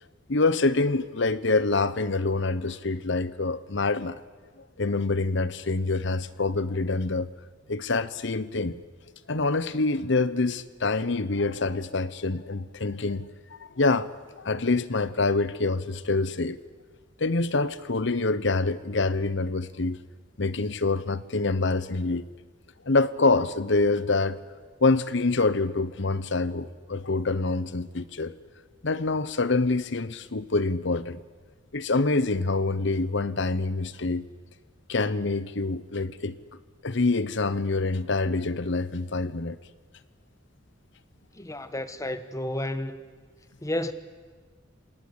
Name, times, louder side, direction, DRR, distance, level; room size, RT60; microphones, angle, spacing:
voice 1, 0.3-4.2 4.8-7.3 7.7-8.7 9.3-13.3 13.8-14.1 14.4-16.6 17.2-20.0 20.4-22.3 22.9-24.4 24.8-28.3 28.8-31.2 31.7-34.3 34.9-36.4 36.8-39.6, left 3 dB, 70° left, 1.0 m, -26 dB
voice 2, 41.3-43.0 43.6-43.9, left 1 dB, 15° left, 1.3 m, -31 dB
28.0 x 18.5 x 8.1 m
head